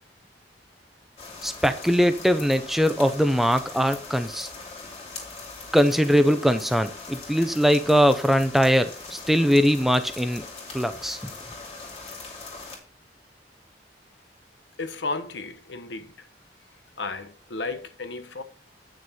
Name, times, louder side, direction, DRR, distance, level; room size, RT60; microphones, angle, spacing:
sound 1, 1.2-12.8, left 3 dB, 35° left, 2.6 m, -41 dB
voice 1, 1.4-4.5 5.7-10.5 10.7-11.2, equal, ahead, 0.5 m, -21 dB
voice 2, 14.8-16.3 17.0-18.4, left 3 dB, 80° left, 1.1 m, -33 dB
9.0 x 6.3 x 4.2 m
head